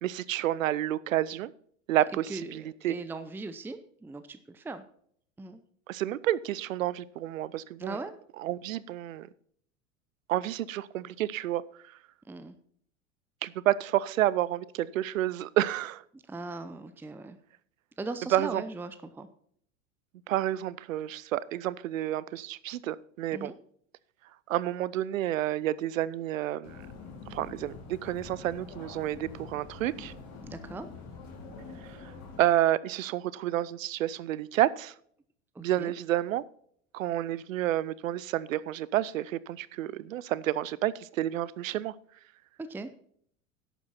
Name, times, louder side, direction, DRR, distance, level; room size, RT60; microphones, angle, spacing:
voice 1, 0.0-1.5 1.9-3.0 5.9-8.0 8.4-9.3 10.3-11.6 13.4-16.0 18.3-18.6 20.3-23.5 24.5-26.7 27.3-30.1 32.0-32.1 32.4-34.9 35.6-36.4 36.9-41.9, right 13 dB, 75° right, 20 dB, 0.7 m, -30 dB
voice 2, 2.3-4.9 5.4-5.6 7.8-8.1 12.3-12.6 16.1-17.4 18.0-19.3 23.3-23.5 30.4-30.9 35.5-35.9 42.6-42.9, right 3 dB, 5° right, 11 dB, 0.6 m, -39 dB
sound 1, 26.6-32.4, left 4 dB, 40° left, 3.5 m, -45 dB
11.5 x 8.3 x 4.2 m, 0.62 s
hypercardioid pair, 85°, 40 cm